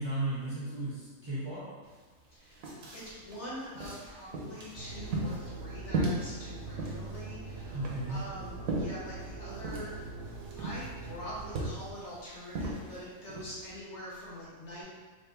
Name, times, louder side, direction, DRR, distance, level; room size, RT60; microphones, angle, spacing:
voice 1, 0.0-1.7 7.7-8.2, right 2 dB, 20° right, -10 dB, 1.1 m, -35 dB
sound 1, 1.8-1.9 2.3-13.8, right 2 dB, 85° right, 1.3 m, -38 dB
voice 2, 2.3-9.9 10.6-14.8, equal, 55° left, -8 dB, 1.6 m, -44 dB
sound 2, 4.8-11.9, right 3 dB, 65° right, 0.9 m, -43 dB
4.9 x 3.0 x 3.3 m, 1.3 s
omnidirectional pair, 1.4 m